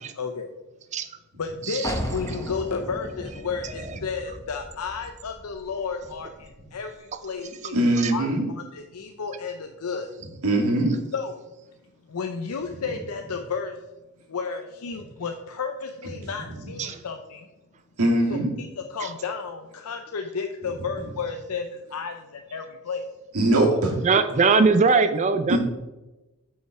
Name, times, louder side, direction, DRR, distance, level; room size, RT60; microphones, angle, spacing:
voice 1, 0.2-0.5 1.4-7.8 8.1-10.1 11.1-11.4 12.1-13.8 14.3-17.5 18.3-23.0 24.5-24.6 24.9-25.0, left 5 dB, 85° left, 5 dB, 0.6 m, -32 dB
sound 1, 1.8-7.4, equal, 15° left, 0.7 m, -37 dB
voice 2, 7.7-8.5 10.4-11.0 18.0-18.5 23.3-23.9 25.5-25.6, right 1 dB, 85° right, -2 dB, 2.3 m, -21 dB
voice 3, 24.0-25.6, right 4 dB, 30° right, 10 dB, 0.4 m, -21 dB
7.9 x 5.6 x 4.7 m, 1.1 s
head